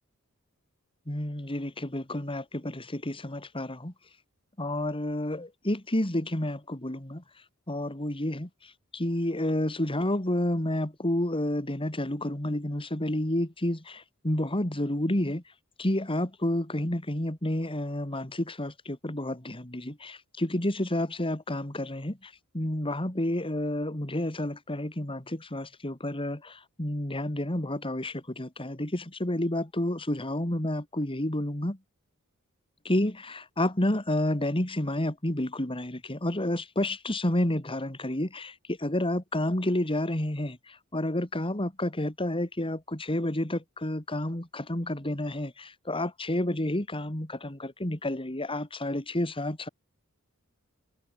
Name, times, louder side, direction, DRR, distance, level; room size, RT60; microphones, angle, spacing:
voice 1, 1.1-3.9 4.6-7.2 7.7-15.4 15.8-31.8 32.8-49.7, left 1 dB, 25° left, 2.8 m, -30 dB
head